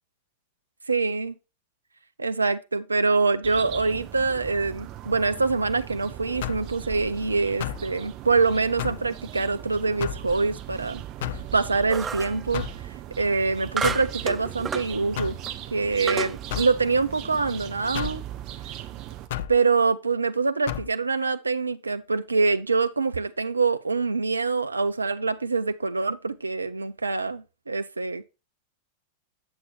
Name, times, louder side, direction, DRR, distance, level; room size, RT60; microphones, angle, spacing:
voice 1, 0.9-1.3 2.2-11.0 11.5-12.6 13.2-15.4 15.7-18.2 19.5-28.2, right 4 dB, 80° right, 0.7 m, -25 dB
sound 1, 3.4-19.3, right 12 dB, 40° right, 1.2 m, -39 dB
sound 2, 6.4-6.7 7.6-7.9 8.8-9.1 10.0-10.3 11.2-11.5 12.5-12.8 13.8-14.1 15.2-15.4 16.5-16.8 17.9-18.2 19.3-19.6 20.7-20.9, left 12 dB, 55° left, 0.6 m, -32 dB
sound 3, 11.9-12.4 13.8-14.9 15.5-15.6 16.1-16.4, right 6 dB, 15° right, 0.3 m, -30 dB
8.2 x 8.0 x 3.1 m
figure-of-eight pair, 90°, 0 cm